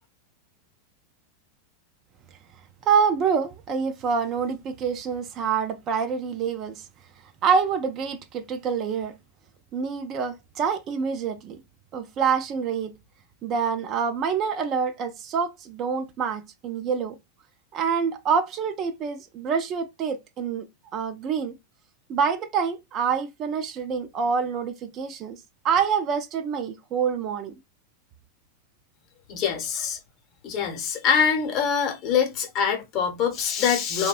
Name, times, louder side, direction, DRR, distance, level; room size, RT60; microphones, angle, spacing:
voice 1, 2.8-6.8 7.4-9.1 9.7-11.6 11.9-12.9 13.4-17.2 17.7-20.6 20.9-21.5 22.1-25.4 25.6-27.5, right 6 dB, 40° right, 0.4 m, -26 dB
voice 2, 29.3-30.0 30.4-34.1, left 7 dB, 45° left, 0.8 m, -24 dB
2.6 x 2.1 x 2.3 m
hypercardioid pair, 95°, 0 cm